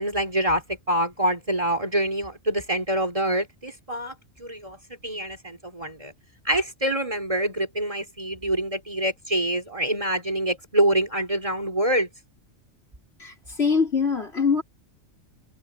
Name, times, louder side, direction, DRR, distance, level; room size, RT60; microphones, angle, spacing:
voice 1, 0.0-6.1 6.5-12.1, right 1 dB, 25° right, 3.5 m, -26 dB
voice 2, 13.2-14.6, left 5 dB, 55° left, 4.4 m, -23 dB
omnidirectional pair, 1.3 m